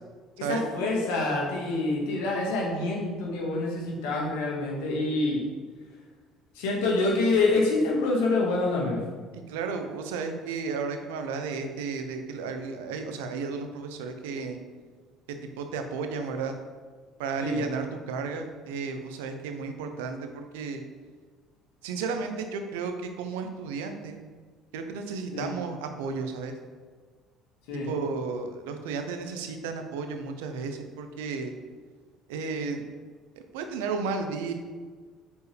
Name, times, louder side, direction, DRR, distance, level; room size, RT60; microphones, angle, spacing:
voice 1, 0.4-5.4 6.6-9.0 17.4-17.6 25.3-25.5 27.7-27.9, left 2 dB, 85° left, -2 dB, 1.8 m, -26 dB
voice 2, 9.3-14.6 15.6-16.5 17.2-20.8 21.8-24.2 24.7-26.5 27.8-31.6 32.3-32.8 33.5-34.5, right 5 dB, 85° right, 6 dB, 0.7 m, -33 dB
6.9 x 4.6 x 3.4 m, 1.5 s
supercardioid pair, 70°, 0 cm